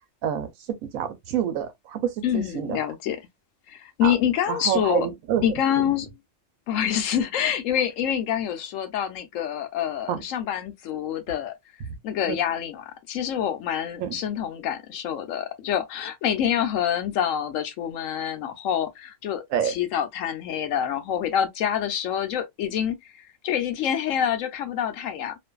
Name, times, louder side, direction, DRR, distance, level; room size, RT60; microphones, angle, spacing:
voice 1, 0.9-2.8 4.0-4.1 4.5-5.4 10.1-10.2 11.9-12.0 12.3-12.4 14.0-14.2 19.5-19.8, right 9 dB, 90° right, 1.1 m, -27 dB
voice 2, 2.2-3.2 3.7-5.1 5.4-6.1 6.7-11.5 12.0-25.4, left 9 dB, 75° left, 0.9 m, -26 dB
2.5 x 2.5 x 2.2 m
omnidirectional pair, 1.4 m